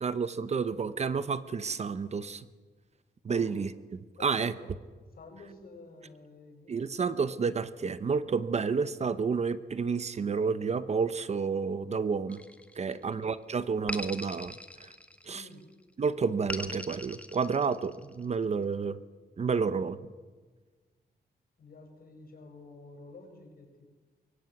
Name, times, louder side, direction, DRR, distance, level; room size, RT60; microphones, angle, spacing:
voice 1, 0.0-2.4 3.2-4.5 6.7-12.4 12.8-14.5 14.8-14.9 15.3-15.5 16.0-19.0 19.4-20.0, right 5 dB, 40° right, 13 dB, 0.9 m, -30 dB
voice 2, 4.2-4.7 5.1-6.9 12.8-13.2 15.3-15.6 21.6-23.9, left 3 dB, 60° left, 4 dB, 6.4 m, -51 dB
sound 1, 12.3-13.1 13.9-15.5 16.5-18.2, left 1 dB, 5° left, 1.5 m, -41 dB
24.0 x 22.5 x 9.4 m, 1.4 s
wide cardioid pair, 165°, 17 cm